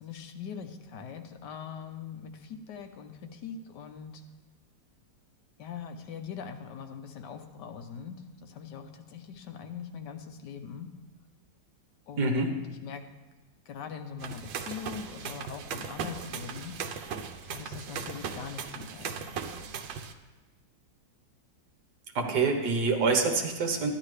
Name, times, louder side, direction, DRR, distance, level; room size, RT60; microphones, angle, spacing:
voice 1, 0.0-4.2 5.6-10.9 12.1-13.0 13.7-16.8 17.4-19.5, left 7 dB, 75° left, 6 dB, 1.3 m, -42 dB
voice 2, 12.2-12.5 22.2-23.9, right 4 dB, 65° right, 3 dB, 1.8 m, -26 dB
sound 1, 14.2-20.1, right 6 dB, 90° right, 1.4 m, -38 dB
13.0 x 10.0 x 3.2 m, 1.3 s
omnidirectional pair, 1.9 m